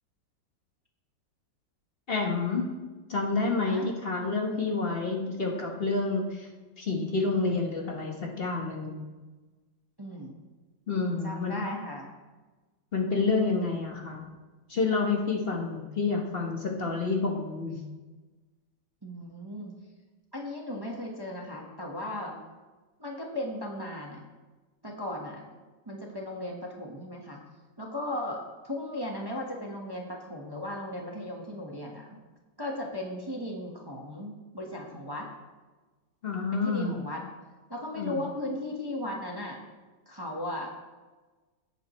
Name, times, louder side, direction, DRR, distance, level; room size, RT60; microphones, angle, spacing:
voice 1, 2.1-2.7 3.1-6.5 6.8-9.0 10.9-11.5 12.9-14.3 14.7-17.8 36.2-36.9 38.0-38.2, left 4 dB, 35° left, 0 dB, 1.4 m, -29 dB
voice 2, 10.0-10.3 11.2-12.1 19.0-19.7 20.3-22.4 23.0-24.2 24.8-25.5 25.9-27.4 27.8-32.2 32.6-35.3 36.5-37.2 37.7-39.6 40.1-40.7, left 1 dB, 15° right, -1 dB, 1.1 m, -36 dB
16.5 x 8.8 x 3.1 m, 1.3 s
omnidirectional pair, 1.9 m